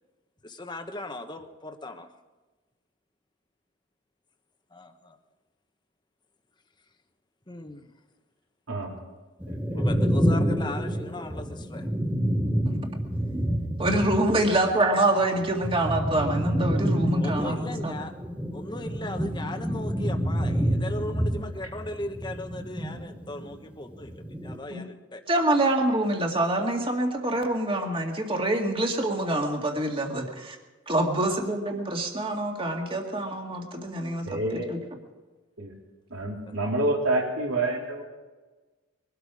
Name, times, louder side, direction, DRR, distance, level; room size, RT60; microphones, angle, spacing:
voice 1, 0.4-2.1 4.7-5.2 7.5-7.9 9.7-11.9 14.5-14.7 17.2-18.1 18.5-25.2 31.2-31.5 36.5-36.6, left 1 dB, 20° left, 6 dB, 1.1 m, -38 dB
sound 1, 9.4-14.7 15.0-23.6 23.9-24.6, equal, 5° right, 1.1 m, -28 dB
voice 2, 9.5-9.8 34.3-34.7 35.6-35.7 36.1-38.0, right 2 dB, 75° right, -1 dB, 3.7 m, -28 dB
voice 3, 13.8-17.6 17.8-17.9 24.7-24.8 25.3-30.6 30.9-34.8, right 1 dB, 25° right, 2 dB, 2.0 m, -26 dB
22.5 x 12.5 x 4.9 m, 1.3 s
head